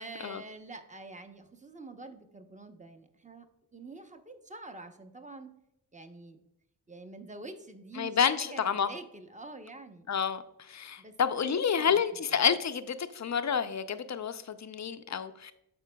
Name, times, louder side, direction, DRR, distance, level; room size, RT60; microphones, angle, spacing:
voice 1, 0.0-3.5 3.7-5.5 5.9-6.4 6.9-10.1 11.0-12.0 12.3-12.4, right 2 dB, 15° right, 7 dB, 0.8 m, -46 dB
voice 2, 8.0-8.9 10.1-15.5, left 7 dB, 40° left, 10 dB, 0.5 m, -29 dB
12.0 x 4.3 x 2.3 m, 0.82 s
cardioid pair, 55°, 42 cm